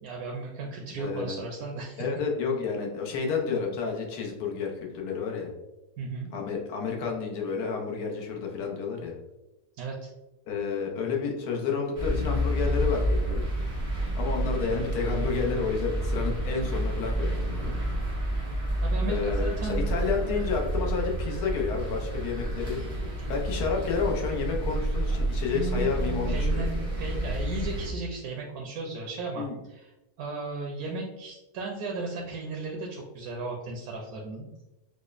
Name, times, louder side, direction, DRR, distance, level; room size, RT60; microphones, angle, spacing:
voice 1, 0.0-2.0 6.0-6.3 9.8-10.1 18.8-19.8 25.5-25.9 26.3-29.9 30.2-34.5, right 3 dB, 75° right, -1 dB, 1.0 m, -35 dB
voice 2, 1.0-1.4 2.0-5.5 6.3-9.2 10.5-13.5 14.2-17.7 19.1-22.8 23.3-26.6 29.4-29.6, left 5 dB, 80° left, 1 dB, 1.3 m, -30 dB
sound 1, 11.9-27.9, right 1 dB, 35° right, 0.6 m, -29 dB
4.9 x 2.1 x 2.4 m, 0.99 s
omnidirectional pair, 1.6 m